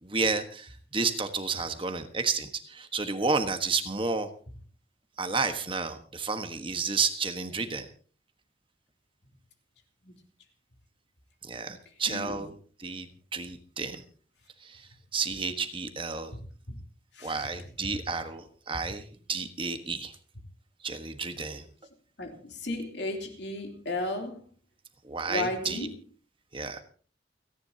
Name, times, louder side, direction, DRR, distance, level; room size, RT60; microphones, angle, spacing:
voice 1, 0.0-4.3 5.2-7.9 11.5-13.1 13.3-14.0 14.6-16.3 17.2-20.1 20.8-21.7 25.0-25.9 26.5-26.8, right 4 dB, 30° right, 7 dB, 1.4 m, -31 dB
voice 2, 12.1-12.4 16.3-16.4 16.7-16.8 17.1-17.5 22.2-24.4 25.3-25.9, left 2 dB, 75° left, 4 dB, 3.2 m, -34 dB
29.5 x 10.5 x 2.9 m, 0.41 s
head